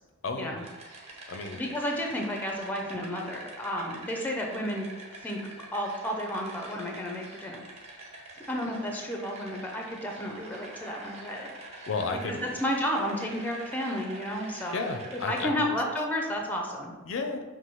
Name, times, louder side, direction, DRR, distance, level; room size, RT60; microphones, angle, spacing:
voice 1, 0.2-0.6 1.3-1.6 11.9-12.4 14.7-15.7 17.1-17.4, left 4 dB, 65° left, 5 dB, 0.4 m, -32 dB
sound 1, 0.6-15.5, right 2 dB, 30° right, 0.7 m, -46 dB
voice 2, 1.2-4.9 5.2-5.4 5.7-7.6 8.5-11.9 12.2-12.3 12.6-14.8 15.1-16.9, equal, 10° left, 1 dB, 0.4 m, -32 dB
5.5 x 2.6 x 3.0 m, 1.3 s
head